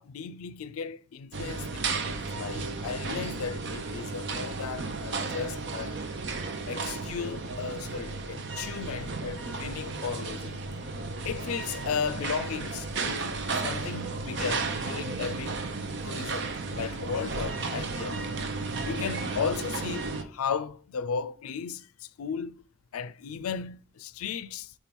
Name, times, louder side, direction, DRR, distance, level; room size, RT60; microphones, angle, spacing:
voice 1, 0.0-6.0 6.7-10.6 11.2-15.6 16.0-18.2 18.8-22.6 22.9-24.7, left 6 dB, 90° left, 0.4 m, -35 dB
sound 1, 1.3-20.2, right 3 dB, 55° right, 0.7 m, -34 dB
4.7 x 4.5 x 5.2 m
head